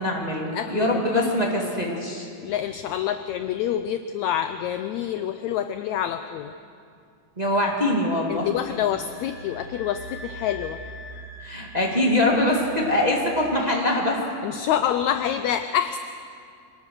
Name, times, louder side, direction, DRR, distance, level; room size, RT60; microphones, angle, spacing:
voice 1, 0.0-2.3 7.4-8.5 11.4-14.2, left 1 dB, 15° right, -1 dB, 1.6 m, -23 dB
voice 2, 0.5-2.0 2.4-6.5 8.3-10.8 14.4-16.0, left 10 dB, 80° left, 10 dB, 1.7 m, -27 dB
sound 1, 8.4-13.4, right 1 dB, 35° left, 1.4 m, -42 dB
25.5 x 18.5 x 6.4 m, 2.3 s
omnidirectional pair, 3.8 m